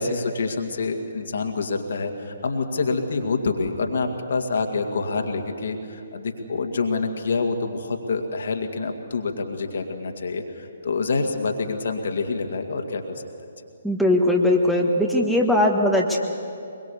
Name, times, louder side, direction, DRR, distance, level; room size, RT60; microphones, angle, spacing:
voice 1, 0.0-13.2, left 4 dB, 55° left, 4 dB, 2.1 m, -27 dB
voice 2, 13.8-16.2, left 1 dB, ahead, 0 dB, 1.5 m, -20 dB
23.0 x 22.5 x 7.0 m, 2.6 s
figure-of-eight pair, 130°, 0 cm